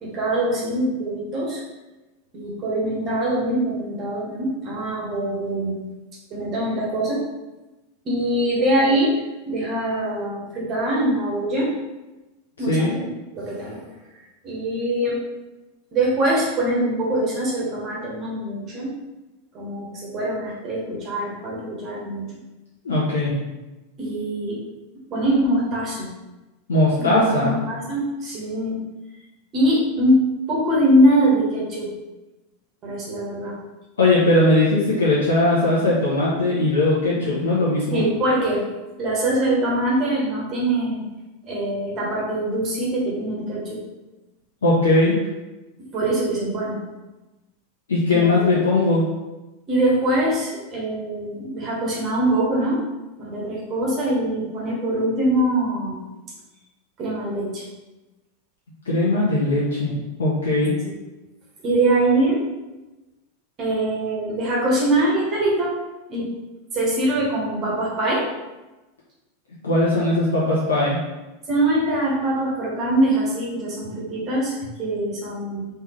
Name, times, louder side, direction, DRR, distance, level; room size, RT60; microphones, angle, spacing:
voice 1, 0.0-1.6 2.3-5.8 6.3-7.2 8.0-11.7 12.6-13.1 13.3-13.8 14.4-15.2 15.9-18.9 19.5-22.3 24.0-24.6 25.1-26.2 27.0-28.8 29.5-30.2 30.5-31.9 32.8-33.6 37.9-38.6 39.0-41.0 41.5-43.8 45.8-46.8 48.1-48.5 49.7-52.8 53.2-56.0 57.0-57.6 60.8-60.9 61.6-62.5 63.6-65.8 66.1-66.3 66.7-68.3 71.5-75.7, right 1 dB, 35° right, -5 dB, 1.3 m, -23 dB
voice 2, 22.8-23.4 26.7-27.6 34.0-38.0 44.6-45.2 47.9-49.0 58.8-60.7 69.6-71.0, left 2 dB, 75° left, -7 dB, 0.8 m, -19 dB
3.6 x 3.2 x 3.0 m, 1.1 s
figure-of-eight pair, 90°, 0 cm